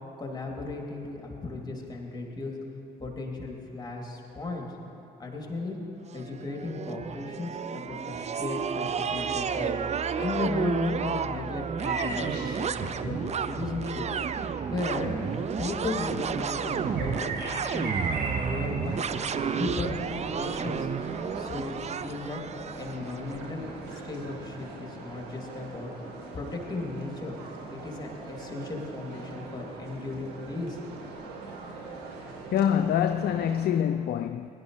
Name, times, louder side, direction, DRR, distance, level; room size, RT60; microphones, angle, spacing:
voice 1, 0.2-2.5 3.0-4.7 5.2-5.8 6.1-9.7 10.1-14.1 14.7-15.1 15.6-19.0 19.5-20.9 21.3-22.4 22.7-25.9 26.3-27.4 27.7-30.8, left 3 dB, 20° left, 3.0 m, -35 dB
sound 1, 6.1-23.2, right 6 dB, 30° right, 0.5 m, -31 dB
sound 2, 11.8-24.0, right 3 dB, 50° right, 3.3 m, -41 dB
sound 3, 14.8-33.7, right 3 dB, 70° right, 1.7 m, -42 dB
voice 2, 32.5-34.5, left 9 dB, 50° left, 0.4 m, -25 dB
22.0 x 11.0 x 3.3 m
figure-of-eight pair, 45°, 21 cm